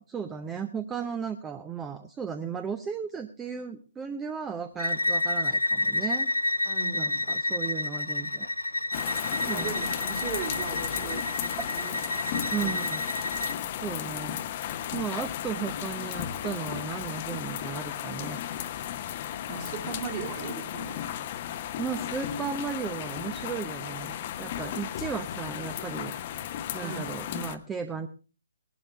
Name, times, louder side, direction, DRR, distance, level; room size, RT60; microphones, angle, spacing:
voice 1, 0.0-6.3 6.9-8.7 9.4-9.7 11.6-11.7 12.5-13.1 13.8-18.4 21.8-26.1 26.7-28.1, right 6 dB, 10° right, 10 dB, 0.7 m, -35 dB
Bowed string instrument, 4.8-13.6, left 2 dB, 85° left, 0.9 m, -30 dB
voice 2, 6.6-7.3 9.5-12.0 12.3-12.8 19.5-21.1 26.8-27.2, right 7 dB, 30° right, 1 dB, 2.5 m, -38 dB
sound 1, 8.9-27.6, left 10 dB, 35° left, 0.9 m, -35 dB
18.0 x 12.0 x 3.4 m, 0.36 s
figure-of-eight pair, 135°, 0 cm